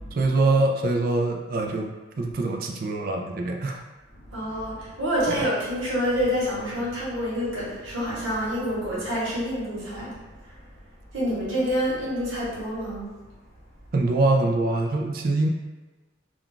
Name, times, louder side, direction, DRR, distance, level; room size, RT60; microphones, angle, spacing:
voice 1, 0.2-1.9 2.2-3.8 5.3-5.4 13.9-15.5, right 2 dB, 45° right, 2 dB, 0.3 m, -24 dB
voice 2, 4.1-10.6 11.1-13.1, equal, 80° right, -7 dB, 1.1 m, -28 dB
2.4 x 2.2 x 3.8 m, 1.2 s
head